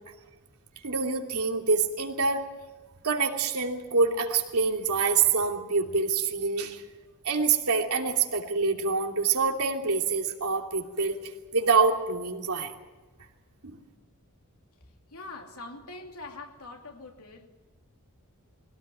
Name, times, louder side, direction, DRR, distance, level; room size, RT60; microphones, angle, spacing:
voice 1, 0.8-2.5 3.0-6.8 7.2-11.1 11.5-12.7 13.6-13.8, right 4 dB, 90° right, 2 dB, 2.9 m, -26 dB
voice 2, 15.1-17.5, left 3 dB, 85° left, 3 dB, 2.8 m, -43 dB
22.0 x 17.0 x 9.3 m, 1.2 s
head